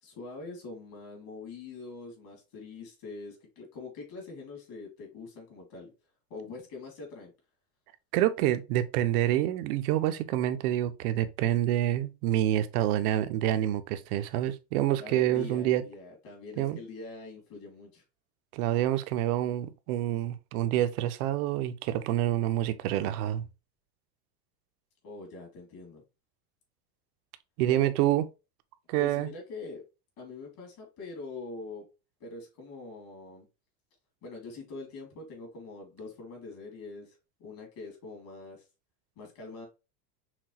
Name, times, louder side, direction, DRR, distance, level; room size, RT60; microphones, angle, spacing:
voice 1, 0.0-5.9 6.3-7.3 15.0-18.0 25.0-26.0 27.7-27.9 29.0-29.8 30.2-31.9 32.2-33.5 34.2-38.6 39.2-39.7, left 3 dB, 45° left, 2.2 m, -43 dB
voice 2, 8.1-15.8 16.6-16.8 18.5-23.5 27.6-28.2 28.9-29.3, right 13 dB, 65° right, 0.6 m, -27 dB
5.9 x 2.3 x 2.8 m
supercardioid pair, 145°, 48 cm